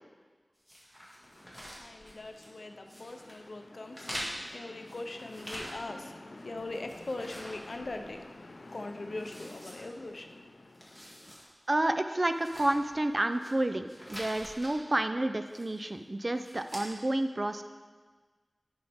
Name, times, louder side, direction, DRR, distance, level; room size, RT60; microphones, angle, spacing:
sound 1, 0.7-2.6 2.9-3.4 3.9-6.1 6.4-8.3 8.7-8.8 9.2-10.3 10.7-11.5 11.8-11.9 12.3-13.5 13.9-14.7 15.5-15.9 16.3-16.9, equal, ahead, 1.9 m, -45 dB
voice 1, 1.2-11.4, left 2 dB, 75° left, 6 dB, 0.6 m, -42 dB
voice 2, 11.7-17.6, right 1 dB, 40° right, 8 dB, 0.4 m, -30 dB
11.0 x 5.3 x 3.5 m, 1.4 s
wide cardioid pair, 65°, 0 cm